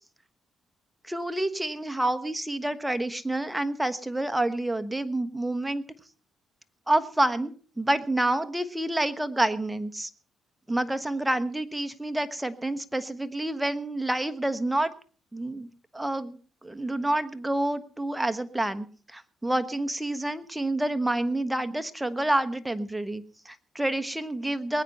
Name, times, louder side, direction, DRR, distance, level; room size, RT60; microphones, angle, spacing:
voice 1, 1.0-5.8 6.9-10.1 10.7-14.9 15.3-24.8, right 1 dB, 10° right, 11 dB, 1.3 m, -28 dB
20.5 x 9.2 x 5.5 m, 0.40 s
cardioid pair, 90°, 0 cm